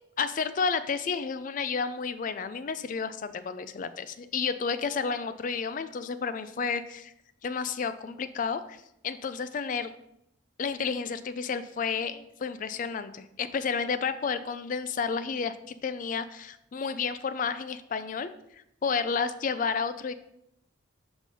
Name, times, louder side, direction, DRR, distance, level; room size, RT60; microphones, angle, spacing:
voice 1, 0.2-7.1 7.4-9.9 10.6-15.5 15.8-18.3 18.8-20.1, left 5 dB, 40° left, 12 dB, 0.3 m, -31 dB
5.3 x 5.0 x 3.7 m, 0.80 s
head